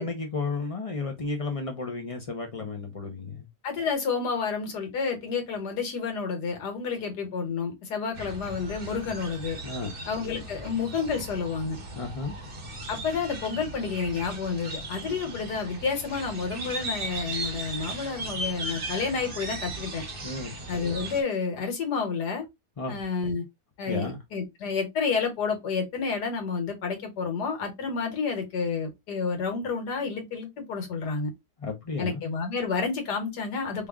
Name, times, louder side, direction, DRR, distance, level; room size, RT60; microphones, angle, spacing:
voice 1, 0.0-3.5 9.6-9.9 11.9-12.4 20.2-20.5 22.8-23.0 23.9-24.2 31.6-32.2, left 3 dB, 45° left, 0.4 m, -33 dB
voice 2, 3.6-9.6 10.1-11.8 12.9-20.0 20.7-22.5 22.9-23.4 23.8-31.3 32.0-33.9, left 5 dB, 85° left, 1.7 m, -30 dB
sound 1, 8.1-21.2, right 2 dB, 45° right, 0.8 m, -37 dB
3.2 x 2.4 x 3.4 m
omnidirectional pair, 1.7 m